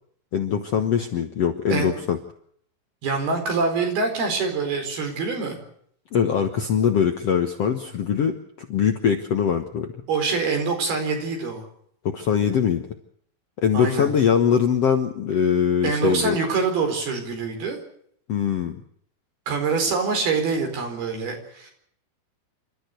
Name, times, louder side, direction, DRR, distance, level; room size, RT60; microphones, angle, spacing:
voice 1, 0.3-2.2 6.1-9.9 12.1-12.8 13.6-16.4 18.3-18.8, left 7 dB, 60° left, 6 dB, 1.8 m, -22 dB
voice 2, 3.0-5.6 10.1-11.7 13.7-14.1 15.8-17.8 19.5-21.7, right 4 dB, 85° right, 4 dB, 6.5 m, -25 dB
28.0 x 13.0 x 8.2 m, 0.65 s
omnidirectional pair, 4.3 m